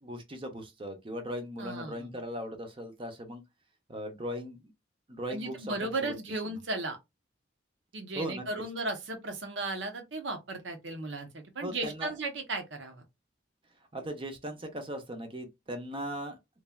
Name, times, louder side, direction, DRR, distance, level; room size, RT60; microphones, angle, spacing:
voice 1, 0.0-3.4 3.9-4.7 5.1-6.1 8.1-8.4 11.6-12.1 13.9-16.4, equal, 30° right, 0.6 m, -38 dB
voice 2, 1.6-2.1 5.3-7.0 7.9-13.0, right 2 dB, 75° right, 0.8 m, -35 dB
3.1 x 2.3 x 2.3 m
head